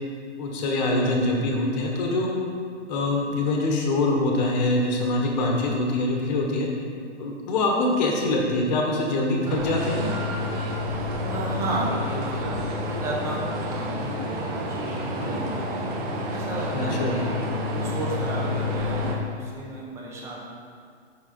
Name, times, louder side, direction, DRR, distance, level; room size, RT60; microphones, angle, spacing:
voice 1, 0.4-2.3 2.9-6.7 7.2-10.1 16.7-17.2, left 2 dB, 35° left, 0 dB, 1.0 m, -24 dB
sound 1, 9.4-19.1, left 1 dB, 35° right, 0.8 m, -29 dB
voice 2, 11.2-15.9 16.3-17.3 17.7-20.4, right 2 dB, 10° right, -4 dB, 0.5 m, -33 dB
5.7 x 4.8 x 3.8 m, 2.2 s
figure-of-eight pair, 120°, 36 cm